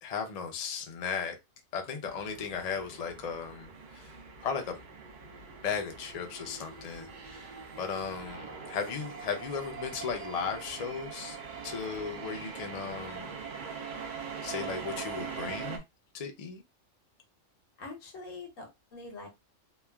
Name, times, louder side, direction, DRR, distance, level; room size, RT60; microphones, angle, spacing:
voice 1, 0.0-1.4 1.7-4.1 4.4-4.7 5.6-7.5 7.8-11.4 11.6-13.3 14.4-15.8 16.1-16.6, left 6 dB, 50° left, 0.5 m, -36 dB
sound 1, 2.0-15.8, right 5 dB, 55° right, 0.6 m, -42 dB
voice 2, 17.8-19.3, left 3 dB, 85° left, 1.3 m, -44 dB
3.1 x 2.3 x 2.2 m
omnidirectional pair, 1.3 m